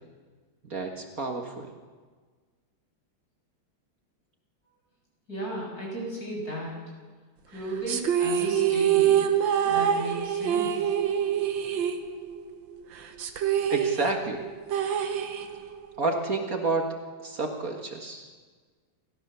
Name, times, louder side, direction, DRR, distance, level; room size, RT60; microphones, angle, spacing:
voice 1, 0.6-1.7 13.7-14.4 16.0-16.9 17.2-18.3, right 3 dB, 50° right, 4 dB, 2.1 m, -30 dB
voice 2, 5.3-6.9 7.5-9.3 9.6-10.9, right 1 dB, 50° left, -2 dB, 7.3 m, -35 dB
sound 1, 7.9-12.5 12.8-12.9 13.2-15.8, right 9 dB, 80° right, 2.0 m, -25 dB
29.5 x 14.0 x 6.9 m, 1.5 s
omnidirectional pair, 2.0 m